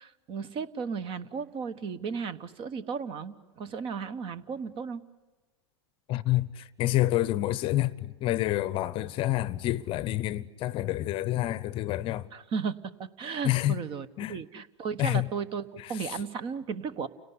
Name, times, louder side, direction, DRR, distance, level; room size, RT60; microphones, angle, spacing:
voice 1, 0.0-5.0 12.3-12.7 13.2-17.1, right 6 dB, 35° right, 1.2 m, -35 dB
voice 2, 6.1-12.3 13.4-13.8 14.2-14.4 15.0-15.3 15.8-16.2, left 15 dB, 40° left, 0.8 m, -28 dB
29.5 x 17.5 x 9.8 m
hypercardioid pair, 110°, 14 cm